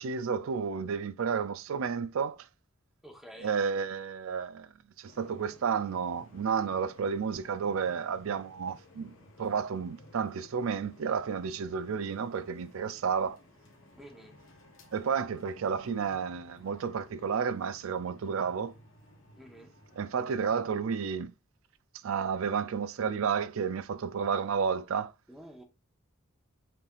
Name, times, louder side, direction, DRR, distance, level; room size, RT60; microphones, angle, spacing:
voice 1, 0.0-2.5 3.4-4.7 5.0-13.4 14.9-18.7 20.0-21.3 22.0-25.1, right 6 dB, 70° right, 0.4 m, -31 dB
voice 2, 3.0-3.6 14.0-14.4 19.4-19.7 25.3-25.6, equal, ahead, 1.0 m, -50 dB
sound 1, 5.1-20.7, left 1 dB, 60° left, 1.3 m, -57 dB
5.7 x 3.4 x 2.4 m
head